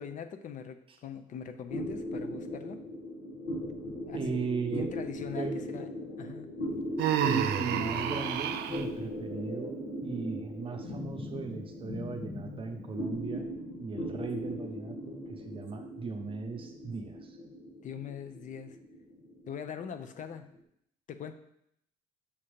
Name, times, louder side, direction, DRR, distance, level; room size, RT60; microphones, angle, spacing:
voice 1, 0.0-2.8 4.0-5.9 6.2-6.5 17.8-18.8 19.5-20.5 21.1-21.3, left 8 dB, 50° left, 9 dB, 0.5 m, -42 dB
sound 1, 1.7-20.5, equal, 75° left, 1.2 m, -39 dB
voice 2, 4.1-4.9 5.4-5.6 7.2-13.5 13.8-17.4, right 4 dB, 30° right, 4 dB, 0.8 m, -37 dB
Human voice, 7.0-8.9, right 10 dB, 75° right, 0.5 m, -30 dB
7.0 x 2.8 x 5.0 m, 0.73 s
cardioid pair, 110°, 17 cm